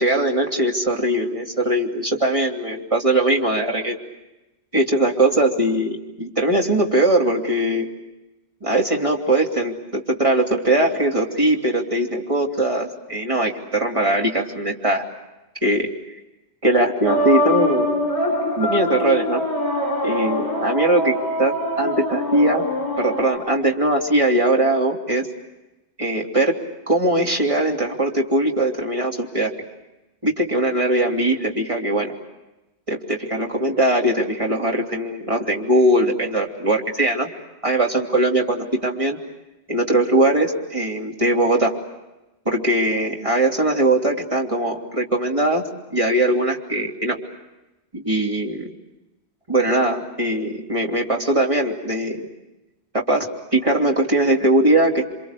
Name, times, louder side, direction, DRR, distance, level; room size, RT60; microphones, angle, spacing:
voice 1, 0.0-4.0 4.7-7.9 8.6-15.0 15.6-15.9 16.6-17.9 18.6-19.4 20.0-22.7 23.0-25.3 26.0-26.6 26.9-29.5 30.2-32.1 32.9-37.3 37.6-39.2 39.7-41.8 42.4-47.2 47.9-48.7 49.5-52.3 52.9-53.3 53.5-55.0, right 1 dB, 30° right, 0 dB, 3.1 m, -20 dB
sound 1, 17.0-23.3, left 1 dB, 30° left, 6.4 m, -23 dB
29.0 x 26.0 x 6.8 m, 1.0 s
omnidirectional pair, 1.1 m